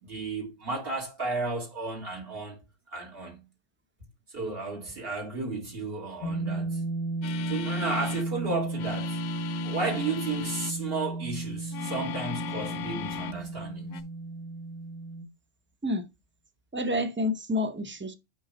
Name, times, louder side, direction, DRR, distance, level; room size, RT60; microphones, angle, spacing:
voice 1, 0.0-2.6 2.9-3.5 4.3-6.8 7.5-9.2 9.6-14.0, right 3 dB, 50° right, 1.9 m, -33 dB
sound 1, 6.2-15.2, right 2 dB, 30° left, 0.8 m, -34 dB
sound 2, 7.2-8.3 8.7-10.8 11.7-13.4 13.9-14.0, left 8 dB, 80° left, 0.9 m, -37 dB
voice 2, 16.7-18.1, left 1 dB, 20° right, 0.3 m, -29 dB
5.4 x 5.0 x 4.2 m
omnidirectional pair, 1.3 m